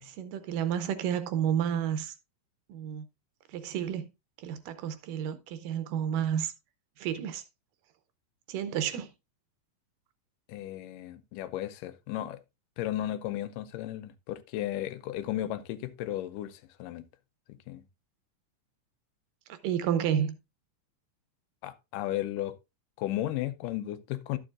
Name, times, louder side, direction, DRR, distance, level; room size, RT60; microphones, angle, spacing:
voice 1, 0.0-2.1 2.7-3.0 3.5-4.1 4.4-6.5 7.0-7.4 8.5-9.1 19.5-20.4, right 9 dB, 80° right, 2.4 m, -31 dB
voice 2, 10.5-12.4 12.8-17.1 17.5-17.8 21.6-22.6 23.0-24.4, left 13 dB, 80° left, 2.2 m, -34 dB
12.5 x 7.1 x 2.4 m
omnidirectional pair, 3.9 m